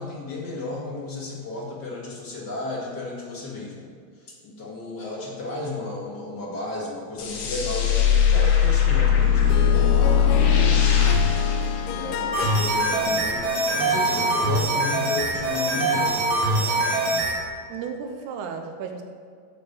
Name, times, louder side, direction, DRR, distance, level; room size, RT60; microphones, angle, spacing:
voice 1, 0.0-3.8 4.2-9.6 11.8-16.8, left 2 dB, 35° left, -4 dB, 2.0 m, -33 dB
sound 1, 7.2-12.5, left 8 dB, 60° left, 2.3 m, -20 dB
Harp, 9.1-14.9, left 7 dB, 80° left, 2.0 m, -32 dB
voice 2, 10.4-10.7 17.7-19.0, right 6 dB, 75° right, 4 dB, 1.9 m, -34 dB
sound 2, 12.3-17.4, right 2 dB, 50° right, 2.6 m, -23 dB
8.1 x 7.7 x 6.1 m, 2.1 s
omnidirectional pair, 4.1 m